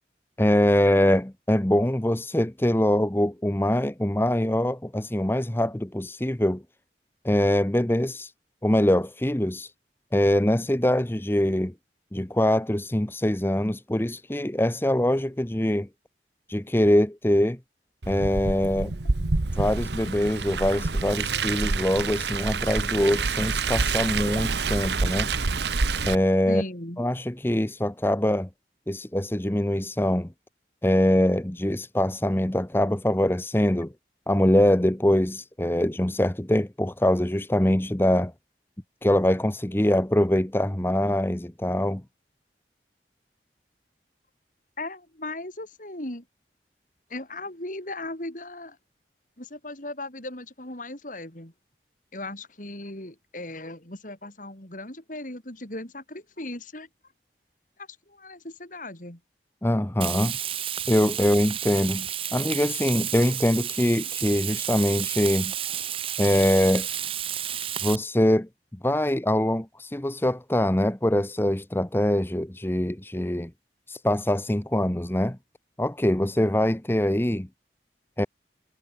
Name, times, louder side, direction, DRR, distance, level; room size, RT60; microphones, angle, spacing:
voice 1, 0.4-6.6 7.2-8.3 8.6-9.7 10.1-11.7 12.1-15.9 16.5-17.6 18.1-19.0 19.6-25.3 26.1-26.6 27.0-28.5 28.9-30.3 30.8-33.9 34.3-38.3 39.0-42.0 59.6-60.4 60.9-65.5 66.2-66.9 67.8-68.5 68.8-73.5 73.9-75.4 75.8-77.5 78.2-78.3, left 1 dB, 15° left, 0.9 m, -23 dB
Car, 18.0-26.2, right 4 dB, 75° right, 1.1 m, -27 dB
voice 2, 26.5-27.0 44.8-46.2 47.1-48.8 49.4-51.5 52.1-56.9 57.8-59.2, left 2 dB, 50° left, 4.1 m, -37 dB
Frying (food), 60.0-68.0, right 10 dB, 30° right, 0.7 m, -31 dB
head